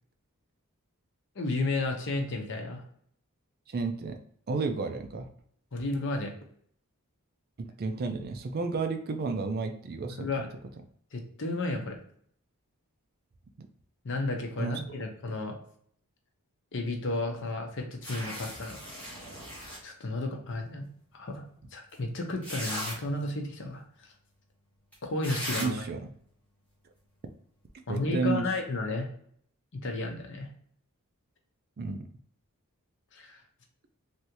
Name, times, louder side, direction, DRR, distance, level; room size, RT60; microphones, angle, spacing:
voice 1, 1.4-2.8 5.7-6.3 10.1-10.5 11.1-12.0 14.0-15.6 16.7-18.8 19.8-20.9 21.1-21.4 21.7-24.1 25.1-25.8 27.9-29.1 29.8-30.5 33.1-33.4, left 2 dB, 55° left, 3 dB, 0.8 m, -32 dB
voice 2, 3.7-4.2 4.5-5.3 7.6-10.5 13.6-13.7 14.6-14.8 25.6-26.1 27.9-28.4 31.8-32.1, right 4 dB, 45° right, 7 dB, 0.4 m, -32 dB
sound 1, 18.0-19.8 21.9-22.0 22.4-23.0 24.9-25.0 25.2-25.7, equal, 5° left, 1.2 m, -37 dB
3.3 x 2.6 x 2.8 m, 0.63 s
head